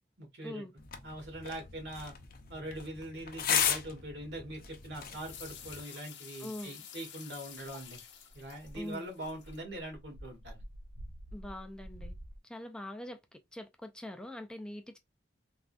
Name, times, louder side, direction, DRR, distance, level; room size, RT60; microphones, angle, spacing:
voice 1, 0.2-0.6 1.0-2.1 2.5-8.0 8.3-10.6, right 1 dB, 80° right, 1.3 m, -42 dB
sound 1, 0.8-5.8, left 8 dB, 55° left, 0.6 m, -36 dB
sound 2, 5.1-9.6, left 8 dB, 90° left, 0.7 m, -50 dB
voice 2, 6.4-6.7 8.7-9.1 11.3-12.1 12.4-15.0, left 1 dB, 5° left, 0.3 m, -43 dB
sound 3, 7.9-12.4, equal, 60° right, 0.5 m, -49 dB
3.5 x 2.3 x 2.4 m
head